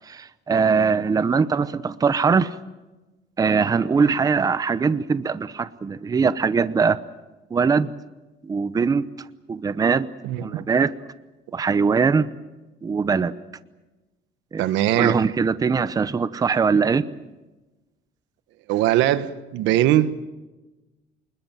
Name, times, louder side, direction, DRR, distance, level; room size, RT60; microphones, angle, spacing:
voice 1, 0.1-2.5 3.4-7.0 7.5-7.9 8.4-9.1 9.5-10.1 10.4-10.9 11.5-12.3 12.8-13.3 14.5-14.6 15.0-17.1, right 5 dB, 20° right, 15 dB, 0.8 m, -21 dB
voice 2, 10.2-10.6 14.6-15.2 18.7-20.3, right 13 dB, 85° right, 13 dB, 1.4 m, -21 dB
27.5 x 21.0 x 7.5 m, 1.1 s
cardioid pair, 145°, 19 cm